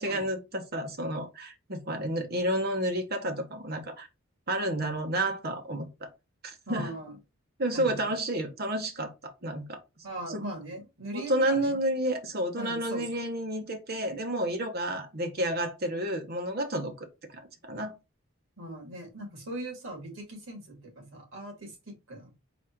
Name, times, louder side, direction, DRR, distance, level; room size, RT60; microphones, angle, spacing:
voice 1, 0.0-4.1 4.5-5.9 6.4-7.0 7.6-9.8 10.3-10.5 11.1-17.1 17.3-17.9, right 1 dB, 50° right, 1.0 m, -30 dB
voice 2, 6.7-7.2 7.7-8.2 10.0-11.8 12.6-13.1 18.6-22.3, right 1 dB, 75° right, 2.1 m, -40 dB
4.1 x 2.5 x 4.4 m
head